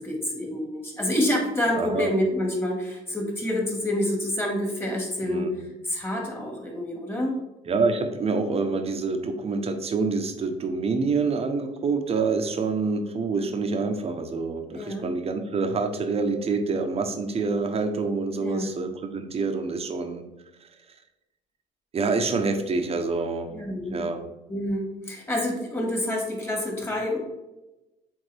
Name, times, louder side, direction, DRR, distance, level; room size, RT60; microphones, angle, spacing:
voice 1, 0.0-5.6 5.8-7.4 14.7-15.1 18.4-18.7 23.5-24.0 24.5-27.2, left 1 dB, 15° left, -1 dB, 2.0 m, -27 dB
voice 2, 1.7-2.1 5.2-5.6 7.7-20.2 21.9-23.5 23.9-24.2, right 4 dB, 35° right, 6 dB, 0.9 m, -27 dB
8.1 x 3.5 x 3.4 m, 1.0 s
cardioid pair, 110°, 17 cm